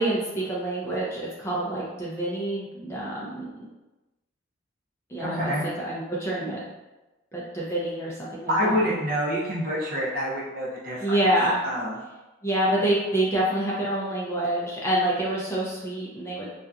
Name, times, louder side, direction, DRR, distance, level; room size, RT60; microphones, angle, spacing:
voice 1, 0.0-3.7 5.1-6.6 7.3-8.9 11.0-11.6 12.4-16.5, right 1 dB, 15° left, -6 dB, 0.4 m, -27 dB
voice 2, 5.2-5.6 8.5-11.2 11.6-12.0, equal, 45° right, -4 dB, 0.6 m, -27 dB
2.7 x 2.3 x 2.3 m, 1.1 s
head